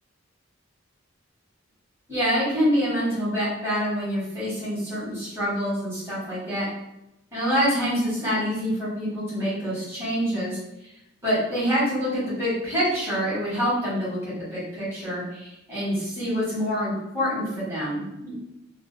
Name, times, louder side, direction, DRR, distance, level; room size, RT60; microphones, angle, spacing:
voice 1, 2.1-6.6 7.3-10.6 11.2-18.3, equal, 15° right, -10 dB, 1.2 m, -26 dB
2.4 x 2.3 x 2.6 m, 0.88 s
head